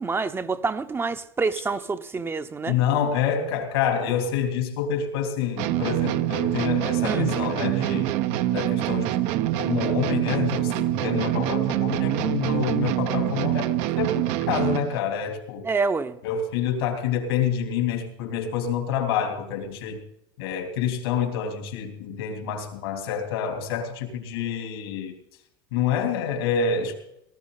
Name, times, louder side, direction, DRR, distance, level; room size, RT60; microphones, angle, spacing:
voice 1, 0.0-2.7 7.0-7.3 15.6-16.2, right 4 dB, 20° right, 0.8 m, -27 dB
voice 2, 2.7-8.1 8.5-15.7 16.2-20.0 20.4-25.1 25.7-26.9, left 7 dB, 85° left, 3.3 m, -27 dB
sound 1, 5.6-15.0, right 14 dB, 65° right, 0.8 m, -25 dB
19.0 x 13.0 x 4.0 m
supercardioid pair, 105°, 12 cm